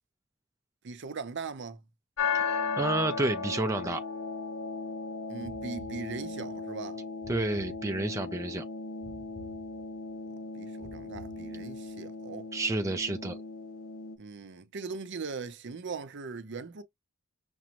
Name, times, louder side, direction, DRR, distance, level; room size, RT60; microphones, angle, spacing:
voice 1, 0.8-1.8 5.3-7.0 10.6-12.5 14.2-16.8, right 4 dB, 55° right, 0.6 m, -40 dB
sound 1, 2.2-14.2, left 5 dB, 70° left, 0.6 m, -36 dB
voice 2, 2.3-4.0 7.3-8.6 12.5-13.4, right 2 dB, 15° right, 0.4 m, -30 dB
sound 2, 5.4-6.6 7.2-8.4 9.0-10.2 10.8-12.0, equal, 15° left, 0.8 m, -51 dB
6.0 x 2.1 x 2.9 m
head